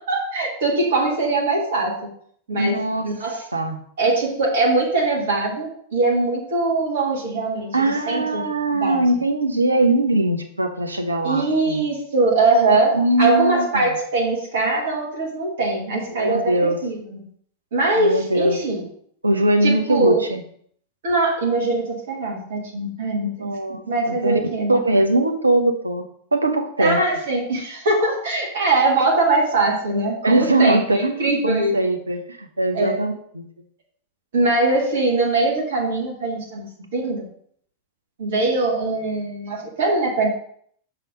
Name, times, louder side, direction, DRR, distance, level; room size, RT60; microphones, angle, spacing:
voice 1, 0.0-1.9 2.5-3.4 4.0-8.4 8.8-9.0 11.2-16.4 16.8-17.2 17.7-18.8 19.6-20.3 21.0-23.5 23.9-24.7 26.8-31.8 32.7-33.0 34.3-36.7 36.9-37.3 38.2-40.3, right 2 dB, 60° right, -1 dB, 1.4 m, -22 dB
voice 2, 2.5-3.1 3.5-3.8 7.7-11.9 12.9-13.8 16.1-16.8 17.9-18.6 19.2-20.4 23.2-24.4 24.7-26.0 26.3-27.0 30.2-33.4, right 2 dB, 80° right, 5 dB, 0.7 m, -21 dB
5.9 x 3.3 x 5.1 m, 0.63 s
figure-of-eight pair, 90°, 0 cm